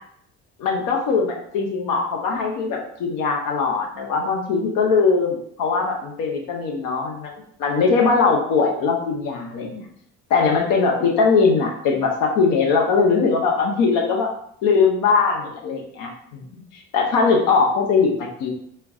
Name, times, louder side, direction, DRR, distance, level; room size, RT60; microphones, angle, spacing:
voice 1, 0.6-9.9 10.3-14.3 14.6-18.5, left 4 dB, 65° left, 1 dB, 1.0 m, -21 dB
4.4 x 2.1 x 3.6 m, 0.67 s
hypercardioid pair, 60°, 36 cm